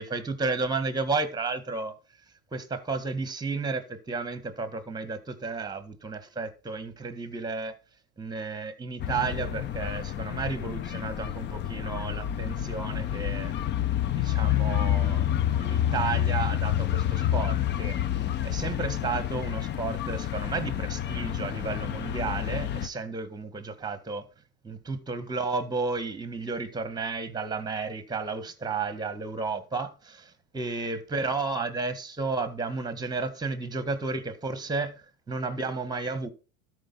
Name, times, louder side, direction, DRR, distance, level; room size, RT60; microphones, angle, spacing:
voice 1, 0.0-2.0 2.5-7.8 8.2-13.5 14.0-15.3 15.5-18.0 18.4-24.3 24.6-36.3, right 4 dB, 10° right, 1.6 m, -32 dB
sound 1, 9.0-22.9, left 11 dB, 25° left, 0.6 m, -29 dB
12.5 x 5.0 x 5.5 m
supercardioid pair, 135°, 40 cm